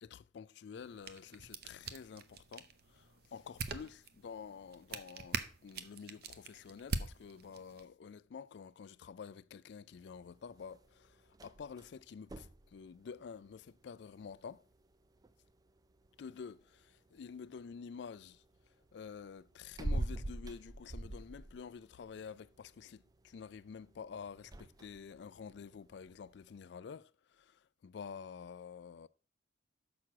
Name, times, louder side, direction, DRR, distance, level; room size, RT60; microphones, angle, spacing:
voice 1, 0.0-14.6 16.2-18.4 18.9-29.1, left 6 dB, 60° left, 0.3 m, -49 dB
sound 1, 0.7-7.9, right 4 dB, 50° right, 0.7 m, -44 dB
sound 2, 9.9-26.6, right 1 dB, 20° right, 0.3 m, -47 dB
6.4 x 6.0 x 5.8 m
head